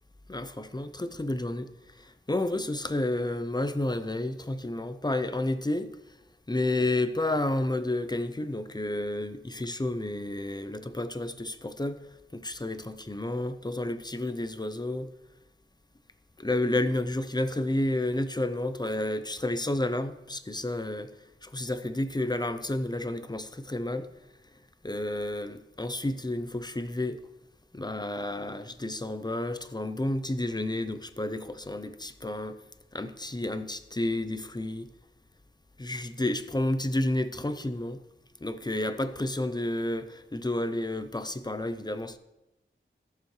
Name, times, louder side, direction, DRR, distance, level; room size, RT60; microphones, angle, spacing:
voice 1, 0.3-1.7 2.0-6.0 6.5-12.0 12.3-15.1 16.4-21.1 21.4-24.1 24.8-27.2 27.7-32.6 32.9-34.9 35.8-38.0 38.4-42.2, left 1 dB, 20° left, 0.6 m, -31 dB
14.0 x 6.8 x 3.2 m
wide cardioid pair, 60°, 21 cm